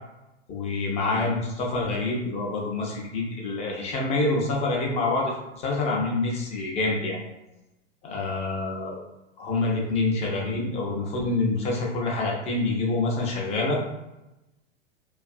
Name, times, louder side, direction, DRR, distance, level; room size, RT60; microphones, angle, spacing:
voice 1, 0.5-7.2 8.0-9.0 9.4-13.8, left 2 dB, 20° left, -2 dB, 0.4 m, -26 dB
2.5 x 2.4 x 2.4 m, 0.97 s
figure-of-eight pair, 95°, 37 cm